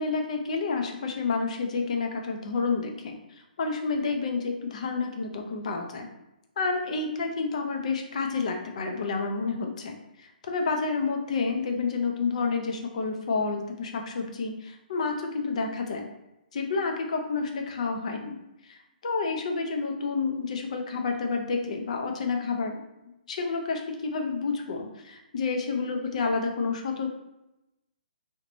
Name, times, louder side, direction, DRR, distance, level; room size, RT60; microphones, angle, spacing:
voice 1, 0.0-6.1 6.6-16.1 16.5-18.4 18.6-22.8 23.3-27.1, left 4 dB, 45° left, 3 dB, 0.4 m, -29 dB
2.9 x 2.1 x 2.5 m, 0.91 s
hypercardioid pair, 170°, 5 cm